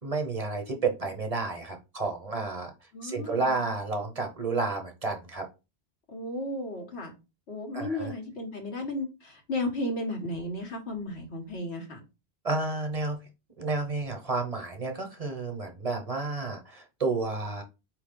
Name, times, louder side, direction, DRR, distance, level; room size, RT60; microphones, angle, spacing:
voice 1, 0.0-2.7 3.0-5.5 7.7-8.1 12.4-13.2 13.6-17.6, right 3 dB, 40° right, 0.9 m, -31 dB
voice 2, 2.9-3.7 6.1-7.1 7.5-12.0, left 1 dB, 85° left, 1.6 m, -34 dB
4.5 x 3.1 x 3.7 m
omnidirectional pair, 1.1 m